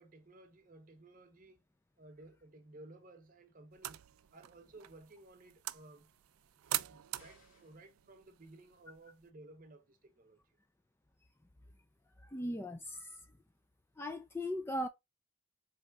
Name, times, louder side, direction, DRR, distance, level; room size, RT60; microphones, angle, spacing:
voice 1, 0.0-1.6 2.0-4.0 4.3-6.1 6.9-10.6, right 2 dB, 40° right, 0.8 m, -57 dB
sound 1, 3.7-9.3, right 15 dB, 85° right, 0.3 m, -44 dB
sound 2, 7.2-7.9, left 3 dB, 65° left, 2.2 m, -65 dB
voice 2, 12.2-13.2 14.0-14.9, left 1 dB, 10° left, 0.3 m, -38 dB
4.7 x 3.2 x 3.5 m
head